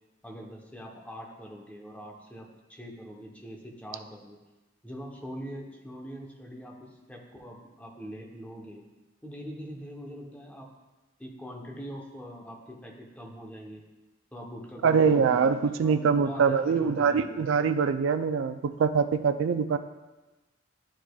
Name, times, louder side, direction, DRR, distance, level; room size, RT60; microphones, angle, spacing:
voice 1, 0.2-4.4 4.8-8.8 9.2-10.7 11.2-13.8 14.3-17.5, equal, 10° left, -1 dB, 0.9 m, -43 dB
voice 2, 14.8-19.8, right 6 dB, 80° right, 10 dB, 0.3 m, -24 dB
11.5 x 4.7 x 2.3 m, 1.1 s
head